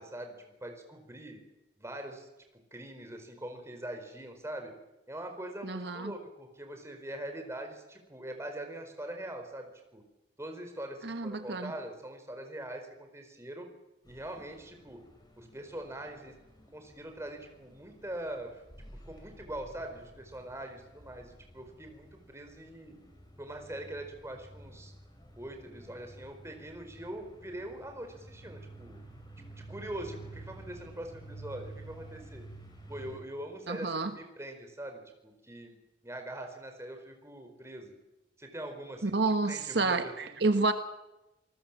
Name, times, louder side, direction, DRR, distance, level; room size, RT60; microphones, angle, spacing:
voice 1, 0.0-1.4 1.8-2.3 2.7-4.7 5.1-10.0 10.4-13.7 14.1-15.0 15.4-16.3 16.7-18.6 19.0-22.9 23.4-24.9 25.4-29.0 29.5-32.4 32.9-35.8 36.0-37.9 38.4-40.4, right 1 dB, 15° right, 5 dB, 4.7 m, -43 dB
voice 2, 5.6-6.1 11.0-11.7 33.7-34.1 39.0-40.7, right 3 dB, 70° right, 8 dB, 1.4 m, -29 dB
sound 1, 14.0-33.2, right 2 dB, 25° left, 6.1 m, -51 dB
28.0 x 19.5 x 7.5 m, 1.0 s
head